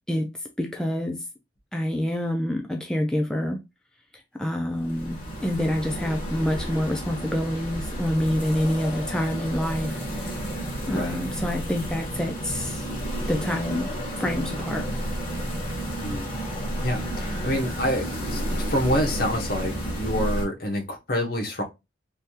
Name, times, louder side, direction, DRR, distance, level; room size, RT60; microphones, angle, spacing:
voice 1, 0.6-1.2 1.7-3.6 4.3-10.4 10.9-12.8 13.3-13.9 14.2-14.9, equal, 5° left, 0.4 m, -27 dB
sound 1, 4.7-20.5, equal, 30° left, 1.8 m, -31 dB
voice 2, 10.9-11.2 16.0-16.4 16.8-21.6, equal, 60° left, 1.0 m, -27 dB
3.3 x 2.3 x 2.8 m
head